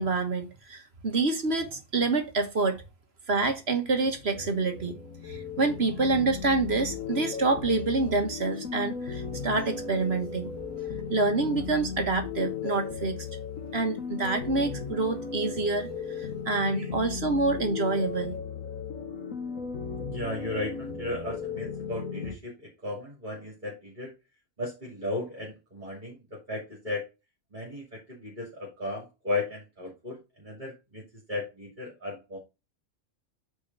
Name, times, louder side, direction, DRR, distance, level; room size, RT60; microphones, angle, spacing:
voice 1, 0.0-2.8 3.3-4.9 5.2-10.5 11.1-13.3 13.7-18.4, right 3 dB, 50° right, 1.6 m, -27 dB
sound 1, 4.0-22.3, left 6 dB, 75° left, 1.5 m, -36 dB
voice 2, 20.1-24.1 24.6-27.1 27.5-31.0 31.3-32.4, left 2 dB, 35° right, 2.7 m, -35 dB
8.6 x 4.5 x 3.9 m
omnidirectional pair, 1.4 m